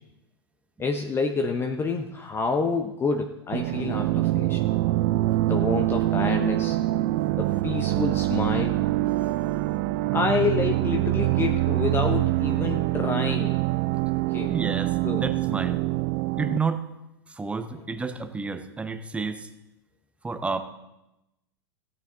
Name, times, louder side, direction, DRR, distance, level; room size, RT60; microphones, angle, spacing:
voice 1, 0.8-4.6 5.5-6.8 7.4-8.8 10.1-13.6 14.3-14.5 15.0-15.2, left 4 dB, 20° left, 4 dB, 0.7 m, -28 dB
sound 1, 3.5-16.6, right 17 dB, 40° right, 0.4 m, -25 dB
voice 2, 14.5-15.8 16.4-16.8 17.3-19.5 20.2-20.6, right 4 dB, 10° right, 9 dB, 0.9 m, -30 dB
16.0 x 8.7 x 3.7 m, 0.93 s
figure-of-eight pair, 90°, 13 cm